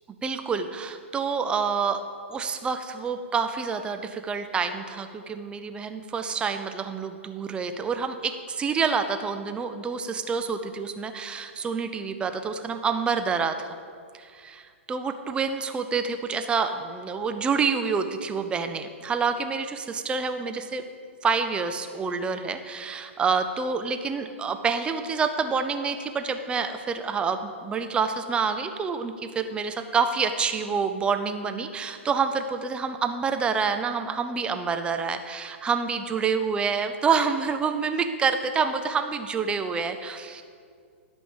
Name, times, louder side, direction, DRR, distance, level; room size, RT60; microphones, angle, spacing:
voice 1, 0.2-2.0 2.3-13.8 14.1-20.8 21.2-40.5, right 5 dB, 15° right, 7 dB, 0.7 m, -27 dB
12.0 x 5.2 x 7.3 m, 2.1 s
hypercardioid pair, 120°, 7 cm